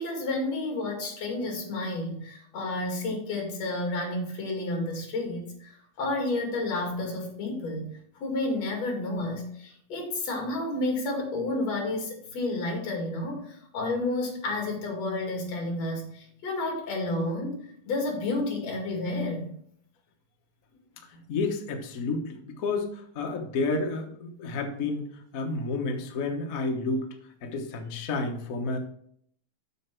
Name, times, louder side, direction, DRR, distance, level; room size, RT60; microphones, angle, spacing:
voice 1, 0.0-5.7 6.0-7.9 8.2-17.6 17.9-19.5, left 2 dB, 60° left, 1 dB, 3.2 m, -31 dB
voice 2, 21.3-25.0 25.3-27.1 27.4-28.8, left 3 dB, 80° left, 3 dB, 0.7 m, -30 dB
7.2 x 7.0 x 4.5 m, 0.64 s
omnidirectional pair, 3.4 m